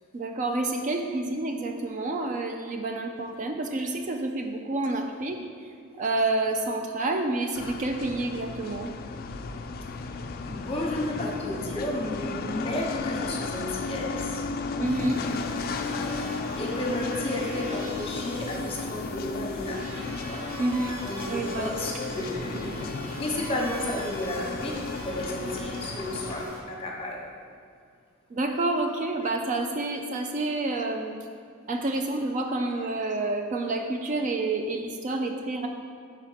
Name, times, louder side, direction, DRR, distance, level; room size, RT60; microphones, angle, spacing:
voice 1, 0.1-5.4 6.0-8.9 14.8-15.2 20.6-21.0 21.3-21.7 28.3-31.2 31.7-35.7, right 2 dB, 35° right, 4 dB, 0.4 m, -28 dB
sound 1, 7.5-26.5, left 4 dB, 45° left, 0.3 m, -34 dB
voice 2, 10.4-14.4 16.0-20.4 21.0-27.2, left 1 dB, 30° left, -1 dB, 1.0 m, -33 dB
sound 2, 14.8-26.6, right 1 dB, 75° right, 1.0 m, -41 dB
5.0 x 4.3 x 5.6 m, 2.3 s
head